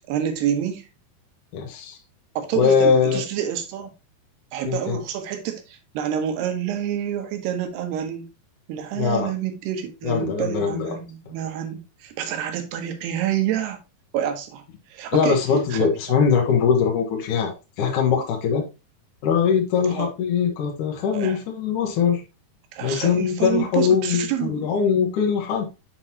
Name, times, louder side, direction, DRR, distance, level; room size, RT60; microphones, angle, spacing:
voice 1, 0.1-0.8 2.4-3.9 4.5-8.3 8.7-13.8 14.1-14.6 14.9-15.4 15.7-16.2 19.9-20.1 21.1-21.4 22.7-24.8, right 10 dB, 90° right, 3.2 m, -28 dB
voice 2, 1.5-2.0 2.5-3.2 4.6-5.0 9.0-9.3 10.0-11.0 15.1-18.6 19.2-22.2 22.8-25.6, left 6 dB, 65° left, 2.2 m, -21 dB
7.5 x 4.9 x 2.8 m
omnidirectional pair, 4.6 m